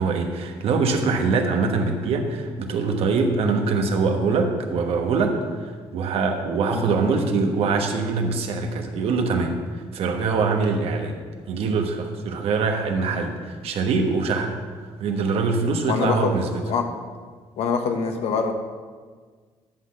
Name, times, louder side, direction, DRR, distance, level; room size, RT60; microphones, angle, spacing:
voice 1, 0.0-9.6 9.9-11.2 11.5-14.6 15.0-16.5, right 4 dB, 65° right, 4 dB, 1.2 m, -23 dB
voice 2, 15.9-16.4 16.7-16.8 17.6-18.5, left 5 dB, 75° left, 5 dB, 1.1 m, -24 dB
11.0 x 4.0 x 7.2 m, 1.5 s
cardioid pair, 140°, 11 cm